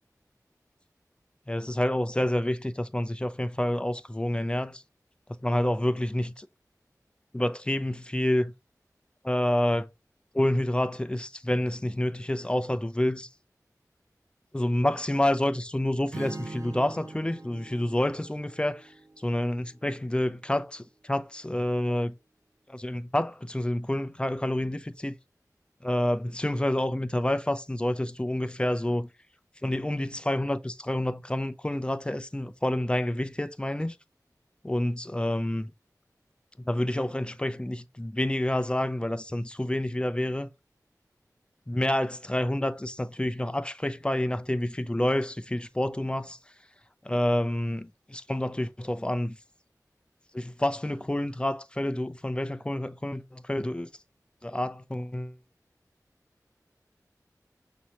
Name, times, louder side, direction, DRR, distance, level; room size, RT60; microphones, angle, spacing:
voice 1, 1.5-4.8 5.4-6.5 7.3-8.5 9.2-9.9 10.3-13.3 14.5-18.9 19.2-22.1 22.7-25.1 25.8-29.1 29.6-33.9 34.6-35.7 36.7-40.5 41.7-46.4 47.0-49.4 50.3-53.9 54.4-55.3, left 1 dB, 15° left, 0.5 m, -28 dB
Strum, 16.1-20.3, right 2 dB, 55° right, 0.6 m, -43 dB
6.1 x 2.8 x 2.9 m
wide cardioid pair, 55°, 7 cm